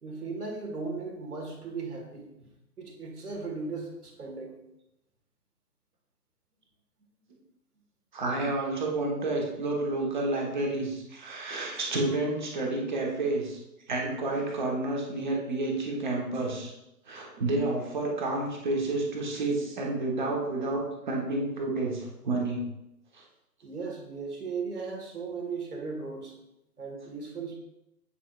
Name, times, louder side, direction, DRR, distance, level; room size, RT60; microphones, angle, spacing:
voice 1, 0.0-2.5 2.8-4.6 23.6-26.3 26.8-27.6, right 4 dB, 65° right, 0 dB, 1.9 m, -37 dB
voice 2, 8.1-13.6 13.9-16.8 17.1-22.6 23.1-23.2, right 2 dB, 30° right, 0 dB, 1.1 m, -30 dB
8.8 x 4.6 x 2.4 m, 0.87 s
figure-of-eight pair, 140°, 49 cm